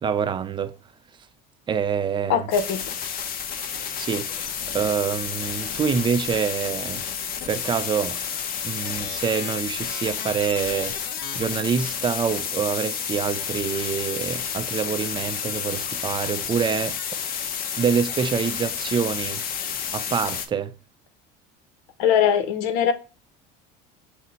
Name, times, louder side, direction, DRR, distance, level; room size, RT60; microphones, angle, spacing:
voice 1, 0.0-0.7 1.7-2.5 4.0-4.3 4.7-7.0 7.5-8.2 8.6-11.0 11.3-17.0 17.8-19.4 19.9-20.7, right 7 dB, 25° right, 0.4 m, -26 dB
voice 2, 2.3-2.9 22.0-22.9, left 8 dB, 75° left, 0.8 m, -21 dB
sound 1, 2.5-20.5, left 7 dB, 45° left, 0.7 m, -30 dB
6.1 x 2.1 x 4.0 m
supercardioid pair, 115°, 21 cm